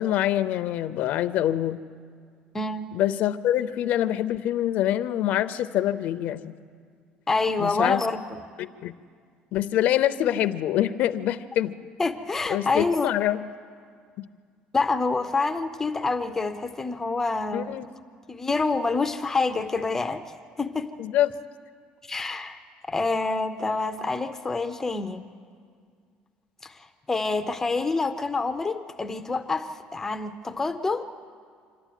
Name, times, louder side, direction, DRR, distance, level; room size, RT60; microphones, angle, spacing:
voice 1, 0.0-1.8 2.9-6.5 7.6-8.0 8.6-8.9 9.5-11.8 12.5-13.5 17.5-17.8 21.0-21.3, left 12 dB, 55° left, 12 dB, 0.6 m, -25 dB
voice 2, 2.5-2.9 7.3-8.4 12.0-13.1 14.7-17.7 18.3-20.3 20.6-20.9 22.0-22.6 22.9-25.3 26.6-31.0, left 3 dB, 15° left, 8 dB, 0.5 m, -27 dB
26.5 x 12.0 x 9.2 m, 2.1 s
cardioid pair, 165°, 3 cm